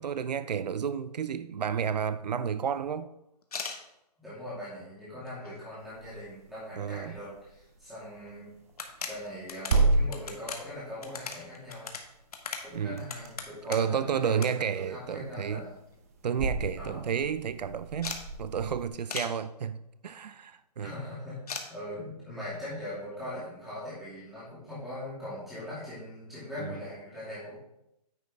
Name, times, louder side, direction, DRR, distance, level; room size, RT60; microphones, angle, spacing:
voice 1, 0.0-3.1 6.8-7.2 12.7-13.0 13.7-15.6 16.2-19.8 20.0-20.9 26.6-26.8, right 7 dB, 80° right, 0.5 m, -31 dB
sound 1, 3.4-3.8 4.5-4.6 5.1-5.8 6.1-6.2 6.4-6.5 7.9-8.0 8.3-8.4 8.7-14.0 14.4-14.5 14.8-15.6 15.9-16.0 16.3-16.4 16.6-17.0 18.0-18.2 19.1-19.3 21.5-21.7, left 5 dB, 65° left, 1.2 m, -39 dB
voice 2, 4.2-8.5 9.1-11.9 12.6-15.7 16.8-17.1 20.8-27.6, left 1 dB, ahead, 2.5 m, -41 dB
sound 2, 5.8-18.9, right 3 dB, 20° right, 0.7 m, -34 dB
9.4 x 5.3 x 3.6 m
hypercardioid pair, 170°, 21 cm